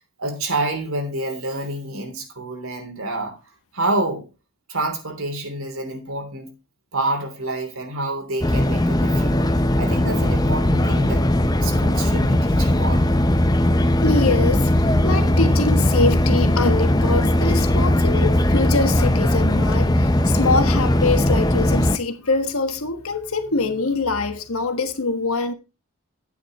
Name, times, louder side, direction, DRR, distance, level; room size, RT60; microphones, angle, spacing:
voice 1, 0.2-3.4 3.7-4.3 4.7-6.5 6.9-9.4 9.8-11.3 11.6-13.1, right 2 dB, 80° right, 3.3 m, -28 dB
sound 1, 8.4-22.0, left 1 dB, 20° left, 0.6 m, -19 dB
voice 2, 14.0-25.5, left 3 dB, 85° left, 1.3 m, -24 dB
11.5 x 9.3 x 3.2 m
head